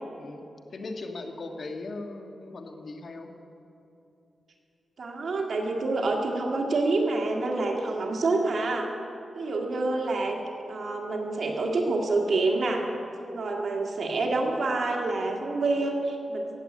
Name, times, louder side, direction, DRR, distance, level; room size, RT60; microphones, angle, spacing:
voice 1, 0.7-3.3, left 2 dB, 60° left, 4 dB, 1.6 m, -38 dB
voice 2, 5.0-8.9 9.4-10.4 10.7-12.9 13.2-16.5, right 3 dB, 65° right, 1 dB, 1.8 m, -27 dB
15.5 x 7.9 x 9.6 m, 2.8 s
cardioid pair, 75°, 0 cm